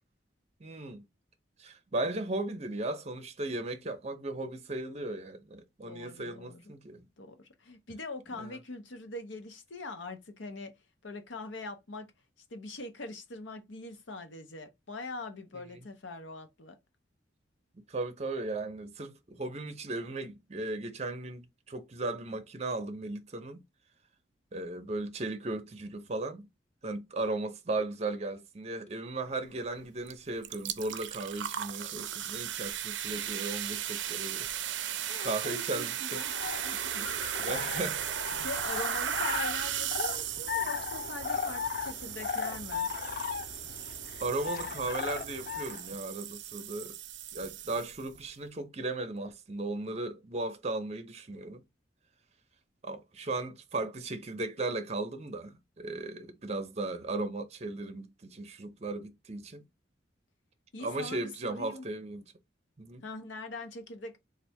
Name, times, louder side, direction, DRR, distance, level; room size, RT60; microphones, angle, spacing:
voice 1, 0.6-1.1 1.6-7.1 7.9-8.0 8.3-8.6 15.5-15.8 17.9-23.6 24.5-26.5 26.8-34.5 34.8-36.3 36.7-38.1 44.2-47.0 47.3-51.6 52.8-59.6 60.8-62.2 62.8-63.1, right 2 dB, 35° right, 0.6 m, -36 dB
voice 2, 5.8-6.6 7.2-10.7 11.0-12.1 12.5-16.8 32.0-32.1 35.1-36.3 36.6-37.1 37.6-37.8 38.4-42.9 60.7-61.9 63.0-64.2, left 2 dB, 85° left, 0.8 m, -42 dB
sound 1, 30.1-30.2 30.4-48.2, right 10 dB, 75° right, 0.5 m, -36 dB
sound 2, 36.1-45.9, left 7 dB, 50° left, 0.4 m, -37 dB
3.3 x 2.5 x 4.2 m
head